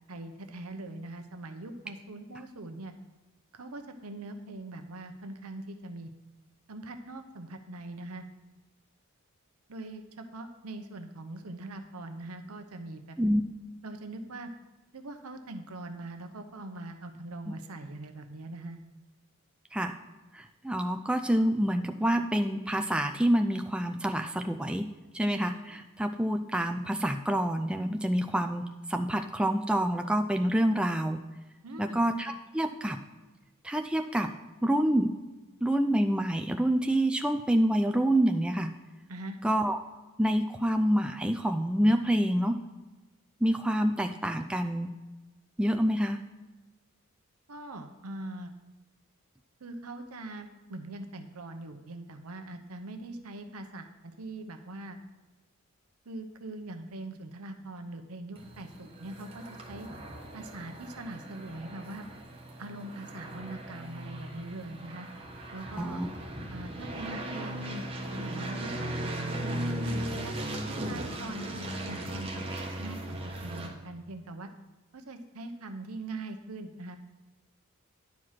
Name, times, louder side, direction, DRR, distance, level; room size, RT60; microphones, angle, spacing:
voice 1, 0.1-2.9 3.5-6.1 6.7-8.2 9.7-13.2 13.8-14.5 14.9-18.8 31.6-32.0 39.1-39.4 47.5-48.5 49.6-55.0 56.1-59.9 60.3-62.0 62.6-65.1 65.5-66.0 66.5-67.9 68.1-71.5 71.8-72.5 72.8-74.5 74.9-77.0, right 2 dB, 85° right, 7 dB, 0.8 m, -42 dB
voice 2, 20.3-24.9 25.1-31.2 31.8-33.0 33.6-34.3 34.6-35.1 35.6-38.7 39.4-39.8 40.2-42.6 43.4-44.9 45.6-46.2 65.8-66.1, right 1 dB, 5° right, 6 dB, 0.4 m, -27 dB
sound 1, 58.4-73.7, right 1 dB, 25° right, 1.2 m, -38 dB
10.5 x 4.8 x 5.7 m, 1.1 s
head